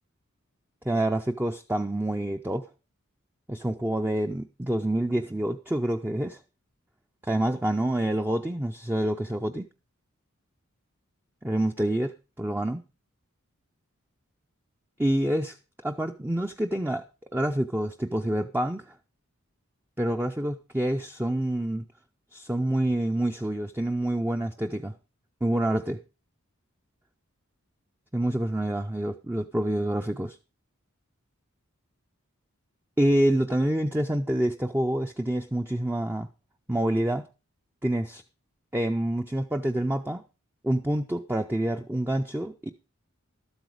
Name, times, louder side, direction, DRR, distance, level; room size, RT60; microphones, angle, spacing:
voice 1, 0.8-2.7 3.5-6.4 7.2-9.7 11.4-12.8 15.0-15.6 15.8-17.0 17.3-18.9 20.0-21.8 22.3-24.9 25.4-26.0 28.1-30.4 33.0-36.3 36.7-37.3 37.8-38.2 38.7-40.2 40.6-42.7, right 1 dB, 10° right, 5 dB, 0.5 m, -27 dB
12.5 x 8.1 x 4.8 m, 0.32 s
head